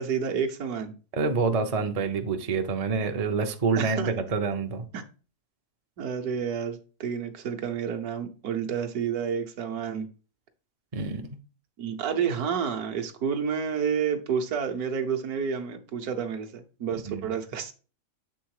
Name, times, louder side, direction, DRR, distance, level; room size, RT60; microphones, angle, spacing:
voice 1, 0.0-0.9 3.8-4.1 4.9-5.0 6.0-10.1 11.8-17.7, right 7 dB, 70° right, 1.3 m, -30 dB
voice 2, 1.1-4.8 10.9-11.3 17.1-17.2, right 4 dB, 45° right, 0.4 m, -27 dB
7.4 x 3.6 x 4.7 m
omnidirectional pair, 1.7 m